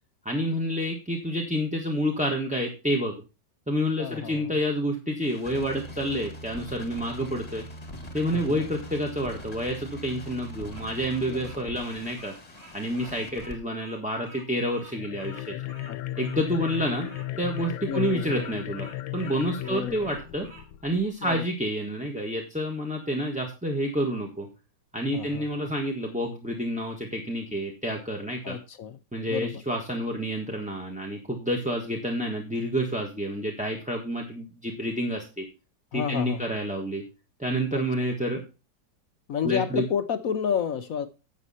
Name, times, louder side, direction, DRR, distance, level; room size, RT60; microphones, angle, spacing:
voice 1, 0.2-3.1 3.7-7.6 8.1-12.3 12.7-15.5 16.2-17.1 17.4-20.5 20.8-24.5 24.9-28.6 29.1-35.4 35.9-37.0 37.4-38.4 39.4-39.8, equal, 5° right, 1.2 m, -29 dB
voice 2, 4.0-4.5 8.3-8.7 11.3-11.5 15.9-16.0 17.9-18.4 19.6-20.2 21.2-21.4 25.1-25.7 28.4-29.0 29.3-29.6 35.9-36.5 37.7-37.8 39.3-41.1, left 8 dB, 60° left, 0.9 m, -31 dB
sound 1, 5.2-13.5, equal, 20° left, 1.6 m, -42 dB
Bird vocalization bird call bird song, 9.8-20.7, right 3 dB, 50° right, 4.9 m, -50 dB
sound 2, 14.9-21.1, left 15 dB, 85° left, 1.5 m, -36 dB
11.0 x 7.3 x 4.2 m
omnidirectional pair, 2.1 m